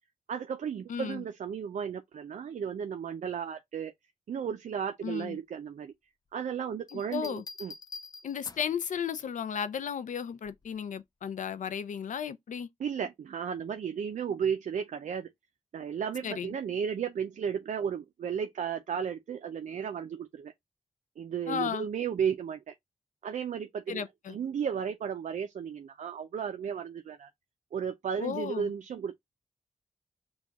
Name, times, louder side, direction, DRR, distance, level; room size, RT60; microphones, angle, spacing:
voice 1, 0.3-3.9 4.3-5.9 6.3-7.7 12.8-15.3 15.7-20.5 21.2-22.7 23.2-27.3 27.7-29.2, right 7 dB, 75° right, 0.5 m, -34 dB
voice 2, 0.9-1.2 5.0-5.4 6.9-7.4 8.2-12.7 16.2-16.5 21.5-21.9 23.9-24.4 28.2-28.7, left 8 dB, 85° left, 0.5 m, -34 dB
sound 1, 6.9-8.8 10.4-10.8, left 3 dB, 30° left, 0.4 m, -46 dB
4.5 x 2.3 x 4.0 m
wide cardioid pair, 100°, 13 cm